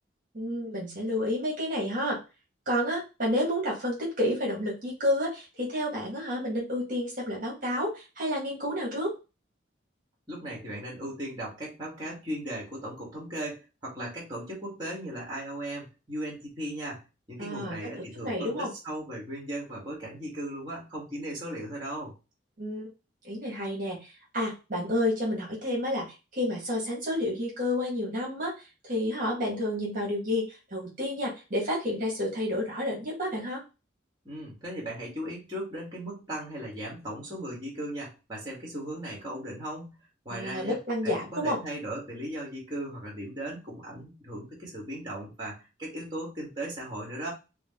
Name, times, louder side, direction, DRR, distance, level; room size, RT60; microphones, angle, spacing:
voice 1, 0.3-2.2 2.6-9.1 17.4-18.7 22.6-22.9 23.2-28.5 28.8-33.6 40.3-41.6, left 1 dB, 45° right, -4 dB, 1.7 m, -30 dB
voice 2, 10.3-22.1 34.2-40.0 40.3-40.8 41.0-47.3, right 1 dB, 20° right, -3 dB, 1.8 m, -37 dB
4.9 x 2.3 x 3.7 m, 0.28 s
head